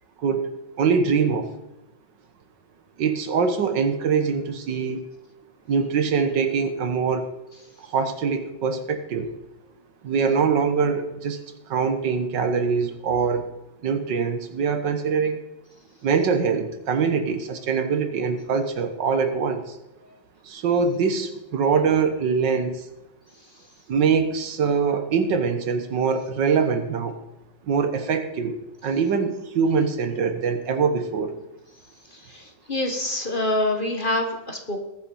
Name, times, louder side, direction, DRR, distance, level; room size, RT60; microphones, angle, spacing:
voice 1, 0.8-1.5 3.0-5.0 5.7-7.3 7.8-9.3 10.0-13.5 13.8-15.4 16.0-19.8 20.4-22.9 23.9-27.2 27.7-31.4, right 5 dB, 75° right, 8 dB, 1.9 m, -23 dB
voice 2, 32.2-34.8, left 1 dB, 30° left, 4 dB, 1.6 m, -26 dB
20.5 x 7.3 x 5.5 m, 1.0 s
omnidirectional pair, 1.9 m